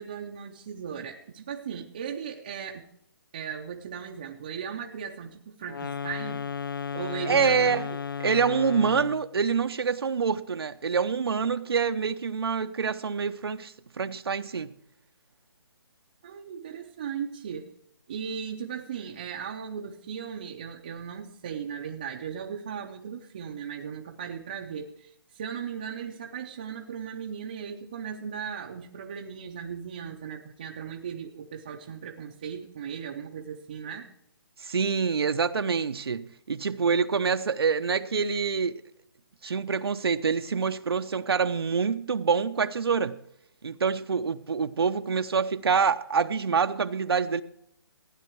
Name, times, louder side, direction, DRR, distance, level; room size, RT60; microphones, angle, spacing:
voice 1, 0.0-2.8 3.3-6.4 6.9-7.7 16.2-17.7 18.1-34.1, right 7 dB, 20° right, 0.6 m, -37 dB
sound 1, 5.6-9.3, left 6 dB, 65° left, 0.5 m, -34 dB
voice 2, 7.3-7.9 8.2-14.7 34.6-38.8 39.4-43.2 43.6-47.4, right 5 dB, 85° right, 0.8 m, -26 dB
15.0 x 10.0 x 4.6 m
hypercardioid pair, 175°, 12 cm